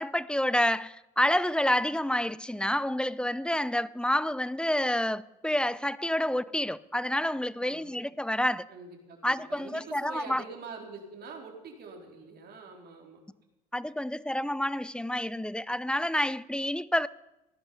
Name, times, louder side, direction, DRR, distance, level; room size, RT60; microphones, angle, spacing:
voice 1, 0.0-8.6 9.2-10.4 13.7-17.1, left 1 dB, 5° left, 0.6 m, -28 dB
voice 2, 7.6-8.0 8.7-13.2, right 4 dB, 55° right, 4.1 m, -45 dB
17.5 x 11.0 x 5.6 m
hypercardioid pair, 65°, 19 cm